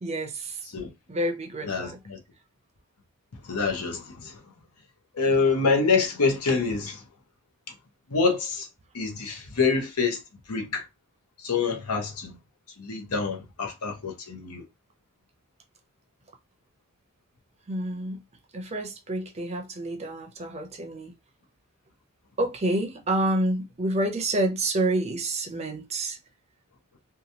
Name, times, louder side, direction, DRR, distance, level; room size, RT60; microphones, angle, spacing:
voice 1, 0.0-0.6 1.1-2.0 17.7-18.2 18.5-21.1 22.4-26.2, right 1 dB, 30° right, 0.5 m, -28 dB
voice 2, 1.6-2.2 3.4-4.4 5.1-7.0 8.1-8.7 8.9-10.2 10.5-10.9 11.4-12.3 12.8-14.6, left 4 dB, 75° left, 0.8 m, -26 dB
2.9 x 2.3 x 2.7 m
head